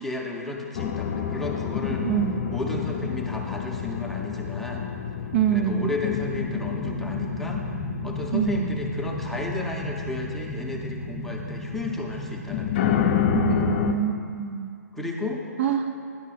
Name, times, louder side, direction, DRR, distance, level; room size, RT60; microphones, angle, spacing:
voice 1, 0.0-2.0 2.5-4.9 5.5-7.6 8.0-12.9 13.5-13.7 14.9-15.4, left 2 dB, 5° left, -1 dB, 0.6 m, -33 dB
sound 1, 0.7-13.9, left 6 dB, 40° left, 0.5 m, -29 dB
voice 2, 2.0-2.3 5.3-5.9 8.3-8.7 13.3-14.7 15.6-15.9, right 9 dB, 45° right, 7 dB, 0.5 m, -25 dB
10.0 x 5.4 x 4.1 m, 2.4 s
figure-of-eight pair, 130°, 9 cm